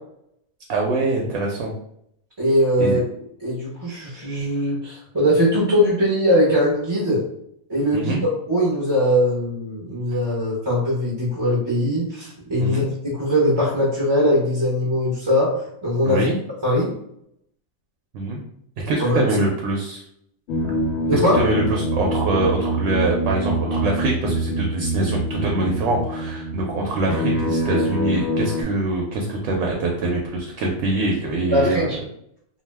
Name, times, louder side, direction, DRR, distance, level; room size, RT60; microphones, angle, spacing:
voice 1, 0.7-1.7 2.8-3.0 7.9-8.2 12.6-12.9 16.0-16.4 18.1-18.4 18.8-20.0 21.1-31.9, right 2 dB, 70° right, -1 dB, 0.9 m, -24 dB
voice 2, 2.4-3.0 3.4-7.2 7.7-8.1 8.5-15.5 15.8-16.3 16.6-16.9 19.0-19.3 21.1-21.4 31.5-32.0, equal, 30° right, -6 dB, 0.5 m, -20 dB
sound 1, 20.5-28.6, right 1 dB, 60° left, 0.8 m, -25 dB
2.6 x 2.1 x 3.2 m, 0.73 s
omnidirectional pair, 1.4 m